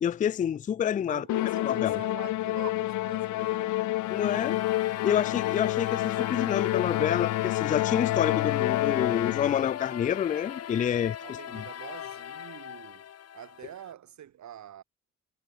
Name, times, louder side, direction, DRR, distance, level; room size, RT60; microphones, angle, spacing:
voice 1, 0.0-1.2 1.6-2.0 4.1-4.6 5.0-11.2 11.5-11.6, left 9 dB, 25° left, 0.4 m, -28 dB
voice 2, 1.1-3.8 11.2-13.0 13.3-14.8, right 10 dB, 70° right, 7.9 m, -45 dB
Musical instrument, 1.3-9.8, left 16 dB, 75° left, 0.7 m, -28 dB
sound 1, 4.0-13.9, left 10 dB, 55° left, 1.4 m, -40 dB
cardioid pair, 90°, 30 cm